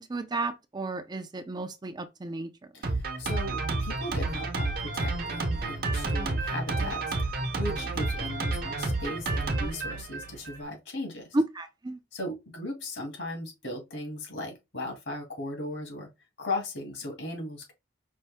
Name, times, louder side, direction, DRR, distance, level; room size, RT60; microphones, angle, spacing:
voice 1, 0.0-2.5 11.3-12.0, right 2 dB, 25° right, 0.5 m, -32 dB
voice 2, 2.7-7.1 7.5-11.3 12.1-16.1 16.4-17.7, left 1 dB, 75° left, 2.4 m, -37 dB
Drum kit, 2.8-10.6, right 2 dB, 55° right, 0.9 m, -30 dB
5.4 x 2.7 x 3.4 m
head